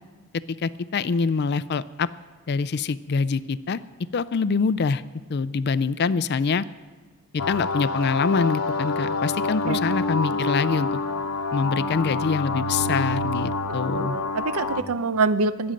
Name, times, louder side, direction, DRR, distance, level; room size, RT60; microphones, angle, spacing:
voice 1, 0.6-2.1 2.5-3.8 4.1-5.0 5.3-6.6 7.3-11.0 11.5-14.2, left 5 dB, 50° left, 16 dB, 0.4 m, -25 dB
sound 1, 7.4-14.8, left 3 dB, 90° left, 0.9 m, -27 dB
voice 2, 9.7-10.0 13.9-15.7, right 4 dB, 75° right, 13 dB, 0.6 m, -25 dB
22.0 x 8.7 x 5.2 m, 1.4 s
head